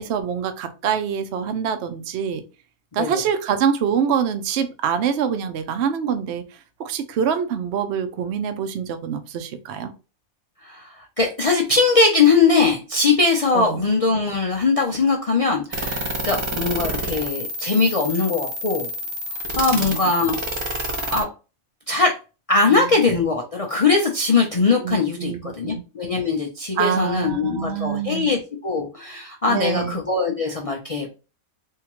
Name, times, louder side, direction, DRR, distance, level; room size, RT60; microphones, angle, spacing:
voice 1, 0.0-2.4 2.9-6.4 6.8-9.9 13.5-13.8 19.7-20.0 22.6-22.9 24.8-25.8 26.8-28.3 29.5-30.0, right 7 dB, 65° right, 9 dB, 0.7 m, -25 dB
voice 2, 10.6-18.9 19.6-20.4 21.1-21.3 21.9-22.1 22.5-31.1, left 4 dB, 65° left, 0 dB, 0.3 m, -21 dB
sound 1, 15.7-21.2, equal, 40° right, 0.4 m, -28 dB
3.6 x 2.8 x 3.0 m, 0.31 s
omnidirectional pair, 1.4 m